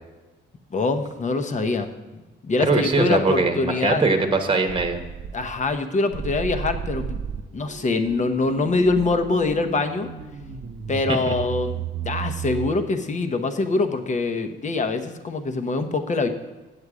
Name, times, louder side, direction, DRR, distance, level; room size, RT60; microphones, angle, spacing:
voice 1, 0.7-4.0 5.3-7.2 7.5-10.1 10.9-16.3, left 3 dB, 35° left, 7 dB, 1.0 m, -24 dB
voice 2, 2.7-5.0, right 3 dB, 25° right, 5 dB, 1.1 m, -21 dB
sound 1, 4.7-5.8 6.1-12.7, right 8 dB, 70° right, 0.9 m, -33 dB
8.7 x 8.3 x 4.9 m, 1.2 s
cardioid pair, 90°, 20 cm